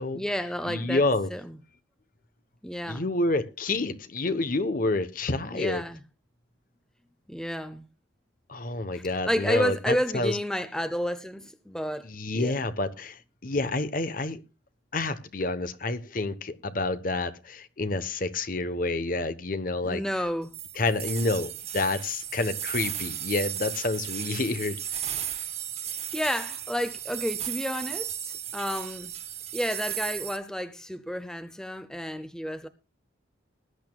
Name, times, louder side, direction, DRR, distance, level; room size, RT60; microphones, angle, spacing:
voice 1, 0.1-1.0 1.3-1.6 2.6-3.0 5.5-6.0 7.3-7.9 8.9-12.6 19.8-20.5 25.8-29.1 29.5-32.7, equal, 5° left, 0.7 m, -31 dB
voice 2, 0.6-1.3 2.9-5.8 8.5-10.4 12.0-14.4 14.9-20.0 20.8-25.0, left 2 dB, 45° left, 0.9 m, -28 dB
sound 1, 20.5-30.4, right 10 dB, 35° right, 1.7 m, -35 dB
20.0 x 11.0 x 2.3 m
head